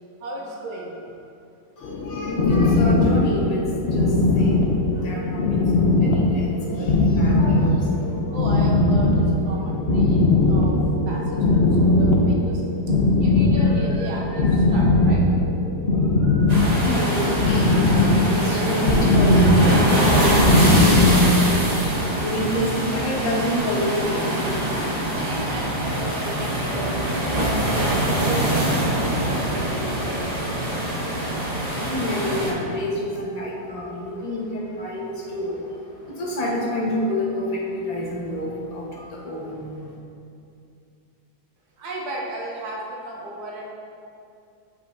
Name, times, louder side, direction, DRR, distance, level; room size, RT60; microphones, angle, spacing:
voice 1, 0.2-0.9 8.3-10.2 10.5-10.8 11.1-11.2 11.5-12.6 13.2-15.2 16.2-17.1 25.1-30.2 34.3-34.4 41.8-43.7, right 2 dB, 65° right, -3 dB, 1.5 m, -35 dB
sound 1, 1.8-21.7, left 2 dB, 60° left, 0.6 m, -19 dB
voice 2, 1.8-8.2 14.0-14.5 16.5-24.6 25.1-25.2 31.2-40.0, left 1 dB, 25° left, -5 dB, 0.9 m, -29 dB
sound 2, 16.5-32.5, right 1 dB, 30° right, 0.8 m, -23 dB
7.9 x 5.6 x 2.6 m, 2.5 s
omnidirectional pair, 1.9 m